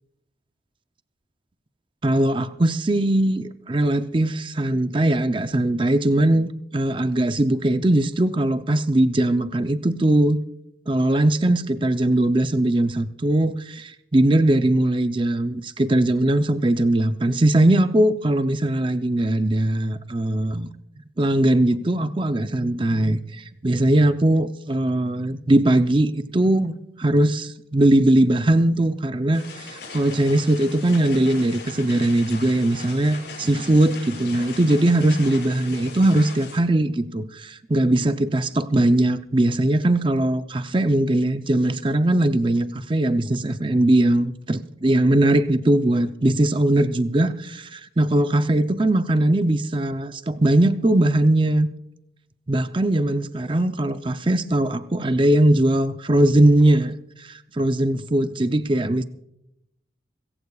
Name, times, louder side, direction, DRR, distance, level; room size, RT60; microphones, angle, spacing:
voice 1, 2.0-10.4 10.9-20.7 21.2-51.7 52.5-56.9 57.2-59.0, right 1 dB, 25° right, 10 dB, 0.6 m, -20 dB
sound 1, 29.3-36.6, left 4 dB, 60° left, 7.0 m, -39 dB
24.5 x 15.0 x 2.4 m, 0.80 s
head